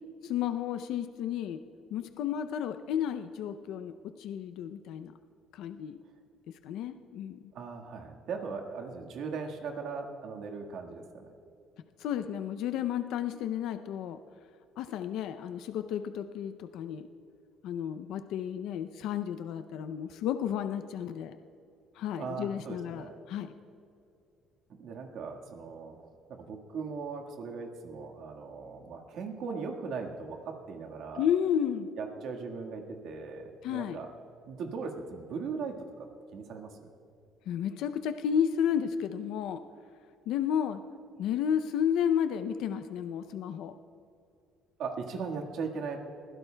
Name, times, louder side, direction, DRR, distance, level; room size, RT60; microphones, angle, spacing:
voice 1, 0.2-1.6 1.9-5.1 5.5-6.0 6.6-7.4 12.0-14.2 14.8-17.1 17.6-21.4 22.0-23.6 31.2-31.9 33.6-34.0 37.5-39.6 40.3-40.8 41.2-43.7, left 9 dB, 70° left, 9 dB, 0.5 m, -32 dB
voice 2, 7.5-11.2 22.2-23.2 24.7-26.0 26.3-31.3 32.0-34.1 34.5-35.7 36.3-36.9 44.8-46.0, right 5 dB, 60° right, 2 dB, 1.6 m, -38 dB
21.5 x 16.0 x 2.3 m, 2.6 s
cardioid pair, 145°, 0 cm